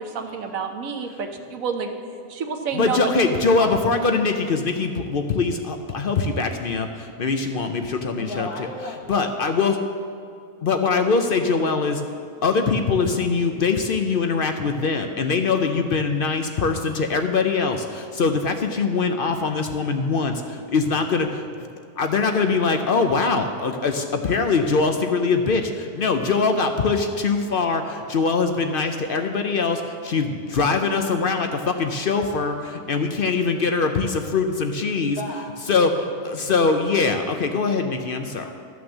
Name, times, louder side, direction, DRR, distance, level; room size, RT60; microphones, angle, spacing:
voice 1, 0.0-1.9 2.3-3.1 3.6-3.7, right 5 dB, 65° right, 5 dB, 1.2 m, -29 dB
voice 2, 2.7-8.5 9.1-9.8 10.6-12.0 12.4-21.7 22.0-35.2 35.7-38.5, left 4 dB, 55° left, 6 dB, 0.6 m, -22 dB
voice 3, 8.2-9.3 35.2-35.5 38.3-38.5, left 1 dB, 85° left, 0 dB, 2.0 m, -34 dB
13.0 x 6.1 x 7.2 m, 2.3 s
omnidirectional pair, 1.6 m